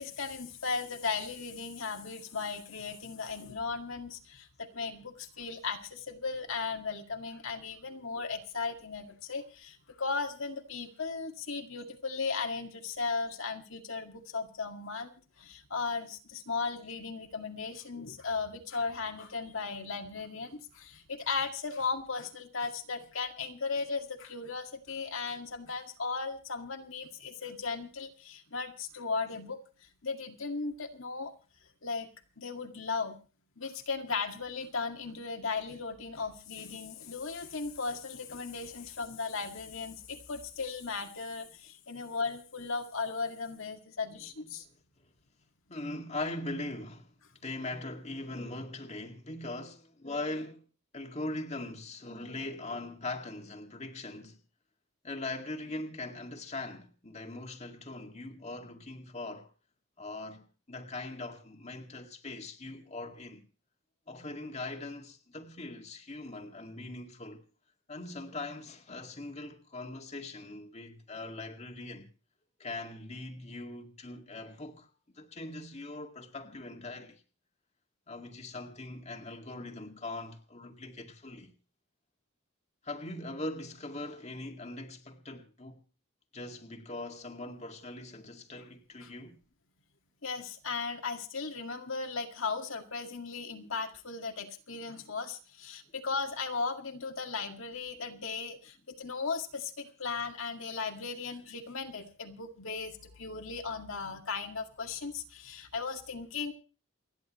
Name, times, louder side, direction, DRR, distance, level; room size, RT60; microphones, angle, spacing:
voice 1, 0.0-31.3 31.8-32.1 32.4-33.2 33.6-44.7 89.0-89.1 90.2-106.5, left 4 dB, 65° left, 2.0 m, -36 dB
voice 2, 45.7-47.1 47.4-50.6 50.9-54.4 55.0-59.5 60.0-63.5 64.1-67.4 67.9-72.1 72.6-77.2 78.1-81.5 82.8-85.8 86.3-89.4, left 2 dB, 30° left, 2.0 m, -41 dB
29.0 x 10.5 x 3.1 m
head